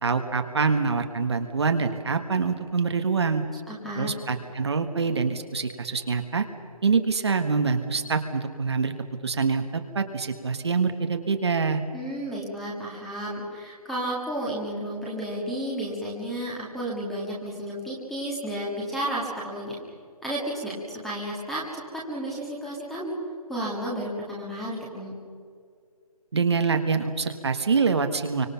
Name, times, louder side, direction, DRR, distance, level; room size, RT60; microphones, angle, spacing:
voice 1, 0.0-3.4 4.0-6.4 6.8-8.9 9.2-11.8 26.3-28.5, right 5 dB, 45° right, 6 dB, 1.5 m, -25 dB
voice 2, 3.7-4.1 11.9-19.8 20.2-23.1 23.5-25.1, right 1 dB, ahead, -5 dB, 1.8 m, -32 dB
25.0 x 25.0 x 5.8 m, 2.2 s
hypercardioid pair, 175°, 20 cm